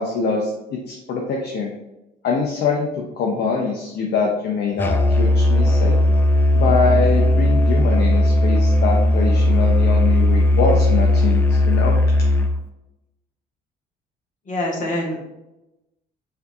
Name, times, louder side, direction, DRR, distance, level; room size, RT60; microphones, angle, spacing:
voice 1, 0.0-1.7 2.2-6.0 6.5-12.0, left 4 dB, 55° left, -1 dB, 0.6 m, -23 dB
Musical instrument, 4.8-12.6, left 1 dB, 10° left, 0.4 m, -17 dB
voice 2, 14.5-15.2, left 1 dB, 40° left, -3 dB, 1.3 m, -25 dB
4.3 x 2.7 x 2.4 m, 0.96 s
supercardioid pair, 70°, 20 cm